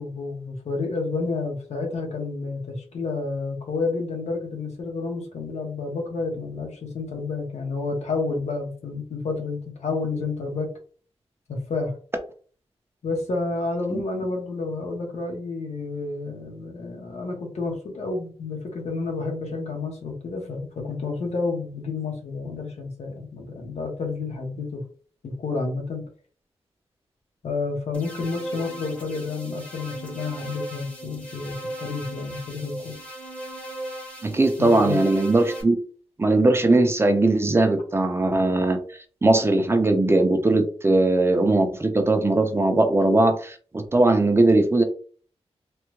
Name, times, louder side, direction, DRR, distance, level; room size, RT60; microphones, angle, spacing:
voice 1, 0.0-10.7 11.5-11.9 13.0-24.8 25.2-26.0 27.4-33.0 34.6-35.0, left 3 dB, 85° left, 1 dB, 1.0 m, -30 dB
sound 1, 27.9-35.6, right 1 dB, 10° left, 0.8 m, -37 dB
voice 2, 34.2-35.8 36.2-38.8 39.2-44.8, right 2 dB, 20° right, 6 dB, 0.5 m, -19 dB
3.3 x 2.1 x 3.0 m, 0.42 s
wide cardioid pair, 120°, 11 cm